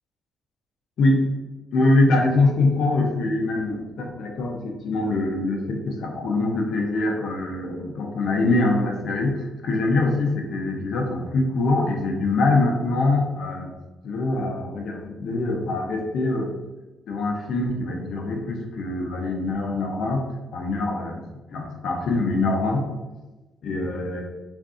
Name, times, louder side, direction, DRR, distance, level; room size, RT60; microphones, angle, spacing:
voice 1, 1.7-13.7 14.0-16.5 17.1-20.2 20.5-21.2 21.5-22.8 23.6-24.2, left 2 dB, 70° left, 1 dB, 0.6 m, -23 dB
2.6 x 2.4 x 3.6 m, 1.1 s
cardioid pair, 90°, 0 cm